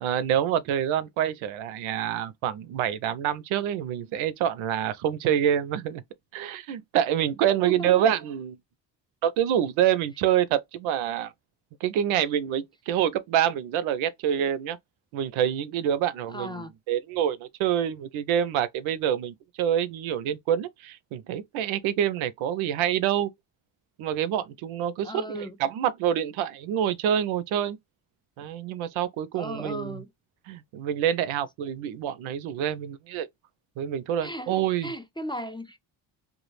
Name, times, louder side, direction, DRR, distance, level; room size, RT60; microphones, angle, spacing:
voice 1, 0.0-6.0 6.3-8.6 9.2-11.3 11.8-14.8 15.1-23.3 24.0-27.8 28.4-30.0 30.5-33.3 33.8-34.9, right 10 dB, 85° right, 0.5 m, -26 dB
voice 2, 16.3-16.7 25.0-25.6 29.3-30.1 34.2-34.5 34.8-35.8, equal, 10° left, 0.3 m, -35 dB
2.2 x 2.0 x 3.0 m
cardioid pair, 70°, 47 cm